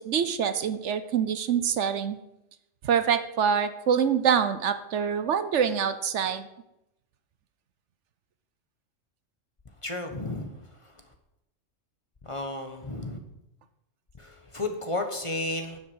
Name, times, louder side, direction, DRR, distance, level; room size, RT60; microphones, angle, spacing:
voice 1, 0.0-2.2 2.8-6.5, right 7 dB, 70° right, 11 dB, 1.1 m, -25 dB
voice 2, 9.8-10.5 12.2-13.2 14.2-15.8, left 2 dB, 25° left, 5 dB, 1.1 m, -32 dB
9.5 x 7.8 x 6.3 m, 0.88 s
omnidirectional pair, 1.3 m